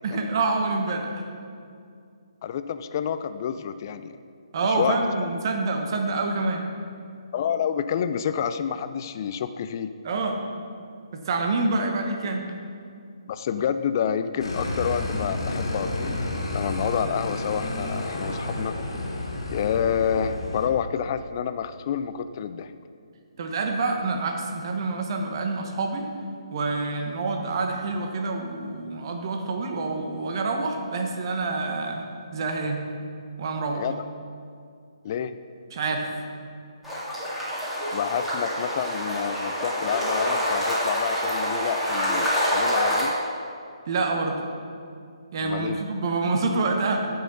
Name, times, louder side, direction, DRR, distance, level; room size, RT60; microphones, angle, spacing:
voice 1, 0.0-1.2 4.5-6.6 10.0-10.4 11.1-12.4 23.4-26.1 26.5-32.1 32.3-32.8 33.4-33.8 35.7-36.1 43.9-44.4 45.3-47.1, right 3 dB, 45° right, 3 dB, 1.0 m, -27 dB
voice 2, 2.4-4.2 4.7-5.0 7.3-9.9 13.3-16.1 16.5-18.7 19.5-22.7 33.7-34.0 35.0-35.4 37.9-43.2 45.4-45.8, left 8 dB, 40° left, 11 dB, 0.4 m, -28 dB
sound 1, 14.4-20.7, left 2 dB, 70° left, 1.8 m, -30 dB
sound 2, 36.8-43.0, equal, 5° right, 2.0 m, -26 dB
13.5 x 5.7 x 4.0 m, 2.3 s
figure-of-eight pair, 140°, 3 cm